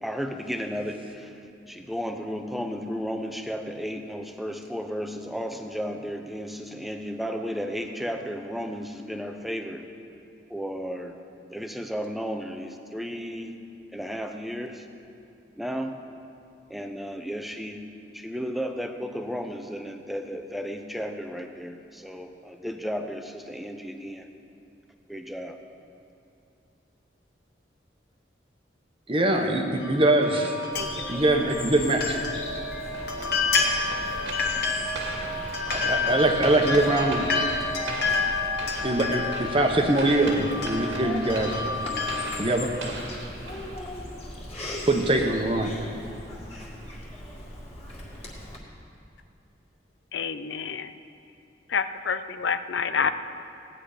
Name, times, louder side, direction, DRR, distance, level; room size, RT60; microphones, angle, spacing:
voice 1, 0.0-1.4 1.7-9.9 10.5-11.1 11.5-13.5 13.9-14.9 15.6-16.0 16.7-17.8 18.1-24.3 25.1-25.6, equal, ahead, 5 dB, 0.7 m, -33 dB
voice 2, 29.1-30.5 31.1-32.2 35.7-37.3 38.8-41.6 42.4-42.7 44.9-45.7, right 1 dB, 30° right, 3 dB, 1.1 m, -23 dB
sound 1, 29.8-42.2, left 3 dB, 55° left, 1.6 m, -29 dB
Bird vocalization bird call bird song, 30.7-48.6, left 1 dB, 35° left, 2.1 m, -39 dB
sound 2, 32.9-44.2, right 2 dB, 85° right, 2.0 m, -39 dB
voice 3, 50.1-50.9 51.7-53.1, left 6 dB, 75° left, 11 dB, 0.5 m, -28 dB
17.5 x 9.7 x 5.0 m, 2.7 s
head